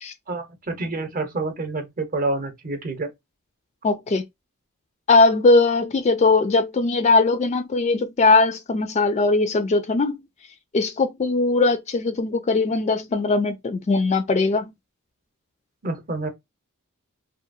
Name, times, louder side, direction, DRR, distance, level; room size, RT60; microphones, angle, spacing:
voice 1, 0.3-3.1 15.8-16.3, right 2 dB, 40° right, 0.7 m, -28 dB
voice 2, 3.8-4.2 5.1-10.2 10.7-14.7, left 3 dB, 30° left, 0.3 m, -20 dB
2.7 x 2.3 x 2.5 m
head